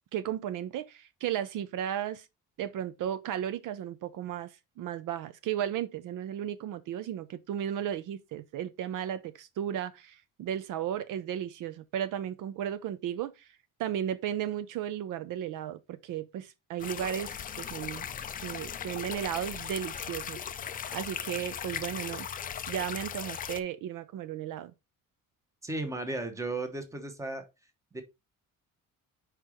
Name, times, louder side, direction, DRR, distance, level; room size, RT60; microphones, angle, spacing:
voice 1, 0.1-2.3 2.6-13.5 13.8-18.1 18.4-20.4 20.9-22.3 22.7-24.7, right 10 dB, 65° right, 0.6 m, -35 dB
sound 1, 16.8-23.6, left 8 dB, 25° left, 0.4 m, -38 dB
voice 2, 25.6-27.5 27.9-28.0, right 2 dB, 10° right, 0.9 m, -35 dB
5.0 x 4.5 x 4.8 m
cardioid pair, 175°, 34 cm